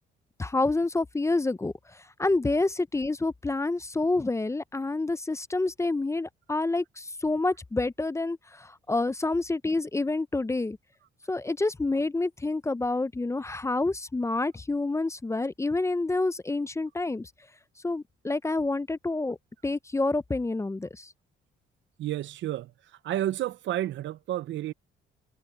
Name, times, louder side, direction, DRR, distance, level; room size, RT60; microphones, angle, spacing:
voice 1, 0.4-10.8 11.3-17.3 17.8-19.4 19.6-21.1, left 2 dB, 15° left, 0.5 m, -28 dB
voice 2, 22.0-22.7 23.0-24.7, right 13 dB, 70° right, 0.6 m, -30 dB
cardioid pair, 90°, 20 cm